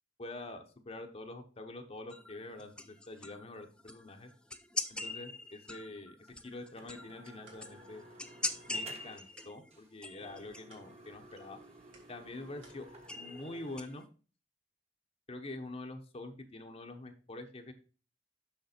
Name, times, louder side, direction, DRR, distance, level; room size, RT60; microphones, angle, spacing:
voice 1, 0.2-4.3 4.9-8.1 8.7-11.6 12.1-12.9 13.1-14.1 15.3-17.7, left 2 dB, 35° left, 5 dB, 0.9 m, -46 dB
sound 1, 2.1-14.0, left 2 dB, 5° left, 0.5 m, -43 dB
sound 2, 6.3-6.4 6.8-9.4 9.7-9.9 10.2-13.8, right 2 dB, 35° right, 1.2 m, -54 dB
sound 3, 7.0-12.9, right 3 dB, 80° right, 2.9 m, -67 dB
6.6 x 6.1 x 4.3 m, 0.36 s
head